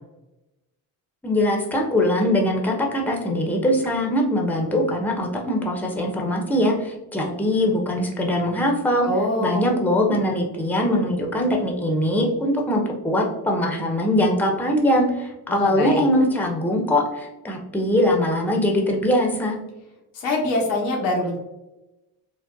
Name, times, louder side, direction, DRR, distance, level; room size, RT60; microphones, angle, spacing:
voice 1, 1.2-9.1 9.4-19.6, left 1 dB, 5° left, 1 dB, 0.7 m, -22 dB
voice 2, 9.0-9.7 15.5-16.0 20.1-21.4, left 2 dB, 80° left, -1 dB, 1.0 m, -24 dB
3.8 x 2.1 x 2.6 m, 0.97 s
hypercardioid pair, 50°, 47 cm